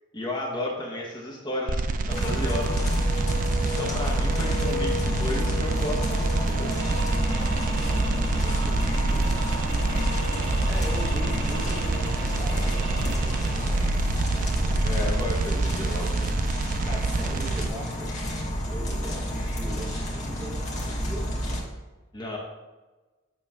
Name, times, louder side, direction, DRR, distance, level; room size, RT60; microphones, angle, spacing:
voice 1, 0.1-2.9 3.6-6.7 14.8-16.3 22.1-22.4, left 1 dB, 20° left, -2 dB, 0.9 m, -33 dB
sound 1, 1.7-17.7, right 3 dB, 45° right, 0.3 m, -27 dB
sound 2, 2.1-21.6, equal, 40° left, 1.3 m, -30 dB
voice 2, 3.7-4.2 7.4-9.4 10.3-13.9 16.8-18.4 18.7-21.4, right 1 dB, 10° right, -3 dB, 1.1 m, -41 dB
sound 3, 6.7-13.5, right 3 dB, 70° right, 1.9 m, -39 dB
7.4 x 3.1 x 5.5 m, 1.2 s
head